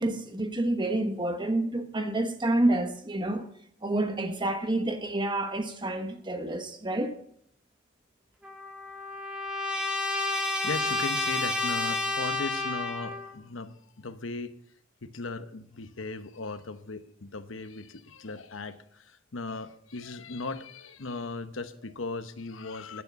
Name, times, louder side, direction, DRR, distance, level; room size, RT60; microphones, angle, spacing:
voice 1, 0.0-3.4 3.8-7.2, right 1 dB, 25° right, 1.2 m, -28 dB
Trumpet, 8.4-13.3, left 2 dB, 5° right, 2.1 m, -30 dB
voice 2, 10.6-14.5 15.0-23.0, left 3 dB, 90° left, 1.0 m, -37 dB
11.0 x 11.0 x 5.9 m
head